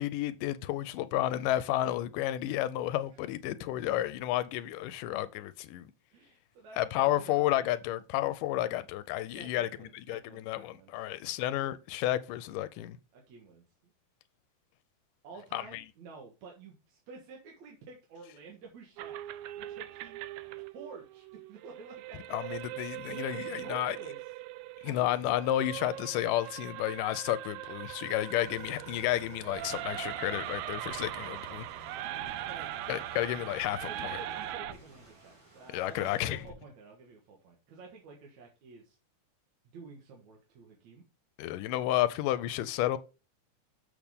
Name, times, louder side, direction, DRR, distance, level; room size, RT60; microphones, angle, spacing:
voice 1, 0.0-5.9 6.8-13.0 15.5-15.8 22.3-24.0 24.8-31.7 32.9-34.2 35.7-36.4 41.4-43.0, left 13 dB, 90° left, 2.2 m, -31 dB
voice 2, 6.1-7.7 9.3-11.4 13.1-13.6 15.2-19.2 19.6-20.2 20.7-22.6 23.1-24.2 24.8-25.5 32.5-33.3 33.9-39.0 39.7-41.0, right 4 dB, 65° right, 2.7 m, -50 dB
sound 1, 19.0-34.7, right 13 dB, 80° right, 1.8 m, -41 dB
sound 2, 28.2-36.5, right 1 dB, 35° right, 3.9 m, -53 dB
7.3 x 6.5 x 3.5 m
omnidirectional pair, 3.8 m